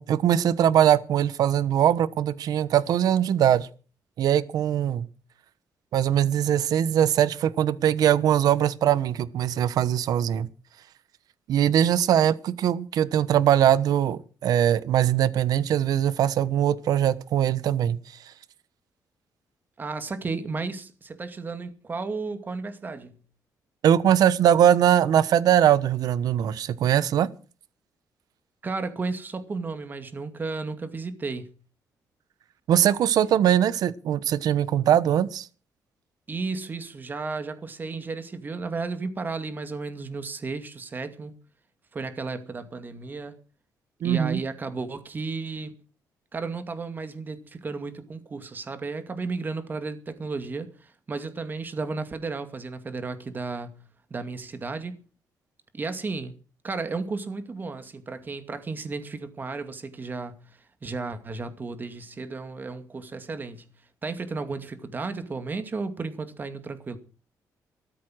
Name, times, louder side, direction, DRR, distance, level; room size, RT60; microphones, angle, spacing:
voice 1, 0.0-3.7 4.2-5.1 5.9-10.5 11.5-18.0 23.8-27.3 32.7-35.5 44.0-44.4, right 10 dB, 75° right, 1.2 m, -21 dB
voice 2, 19.8-23.2 28.6-31.5 36.3-41.3 41.9-43.4 44.0-45.7 46.3-53.8 54.1-55.0 55.7-56.3 56.6-63.7 64.0-67.0, right 4 dB, 30° right, 2.4 m, -33 dB
14.0 x 13.5 x 6.4 m
cardioid pair, 130°, 7 cm